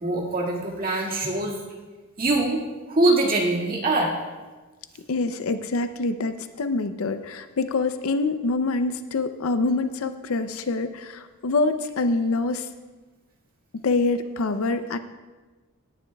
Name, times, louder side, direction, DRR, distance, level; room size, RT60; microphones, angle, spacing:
voice 1, 0.0-1.6 2.2-2.6 2.9-4.1, right 2 dB, 40° right, -2 dB, 1.9 m, -23 dB
voice 2, 5.1-12.7 13.7-15.0, left 3 dB, 70° left, 10 dB, 0.5 m, -25 dB
17.0 x 10.0 x 2.3 m, 1.3 s
head